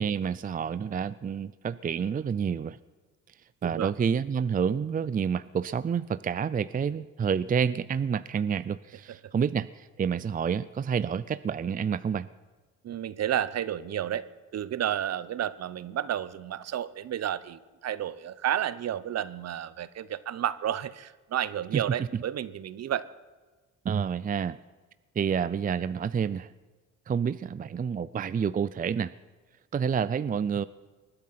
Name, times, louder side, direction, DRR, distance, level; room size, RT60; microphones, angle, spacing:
voice 1, 0.0-2.8 3.6-12.3 21.7-21.8 23.8-24.6 25.2-26.5 27.1-29.1 29.7-30.7, right 7 dB, 30° right, 16 dB, 0.5 m, -29 dB
voice 2, 12.8-14.3 14.5-23.1, right 10 dB, 60° right, 17 dB, 0.9 m, -31 dB
20.0 x 12.0 x 5.8 m, 1.3 s
cardioid pair, 90°, 30 cm